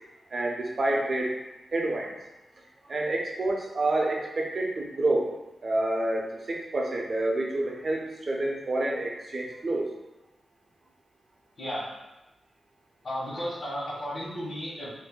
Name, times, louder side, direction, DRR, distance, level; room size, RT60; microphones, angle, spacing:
voice 1, 0.3-1.4 1.7-2.1 2.9-5.3 5.6-9.9, right 2 dB, 50° right, 0 dB, 0.6 m, -28 dB
voice 2, 11.6-11.9 13.0-14.9, equal, 60° left, -11 dB, 1.2 m, -34 dB
2.6 x 2.1 x 3.7 m, 0.96 s
cardioid pair, 85°, 0 cm